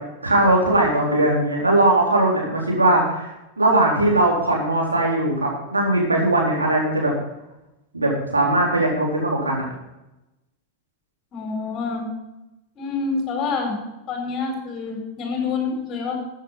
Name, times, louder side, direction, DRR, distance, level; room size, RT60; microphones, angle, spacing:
voice 1, 0.2-3.3 3.6-7.1 7.9-9.7, right 2 dB, 80° right, -3 dB, 4.3 m, -19 dB
voice 2, 11.3-12.1 12.8-13.8 14.1-16.1, left 4 dB, 30° left, 2 dB, 4.7 m, -27 dB
14.0 x 8.4 x 5.8 m, 0.94 s
figure-of-eight pair, 90°, 0 cm